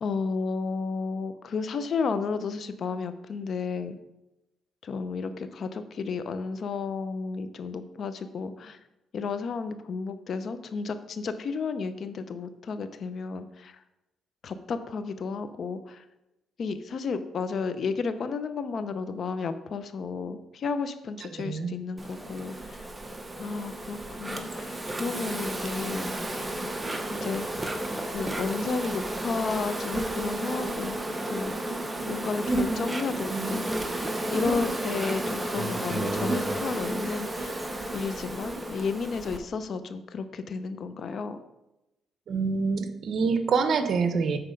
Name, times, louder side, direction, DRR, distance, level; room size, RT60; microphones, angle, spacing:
voice 1, 0.0-4.0 4.8-8.8 9.1-13.7 14.4-16.0 16.6-22.9 23.4-26.2 27.1-31.6 32.1-33.7 34.3-37.6 37.9-41.4, left 5 dB, 55° left, 11 dB, 0.6 m, -32 dB
voice 2, 21.3-21.7 42.3-44.4, right 5 dB, 60° right, 9 dB, 0.8 m, -26 dB
Insect, 22.0-39.4, right 1 dB, 15° right, 0.9 m, -32 dB
7.6 x 4.3 x 5.2 m, 0.95 s
cardioid pair, 90°, 0 cm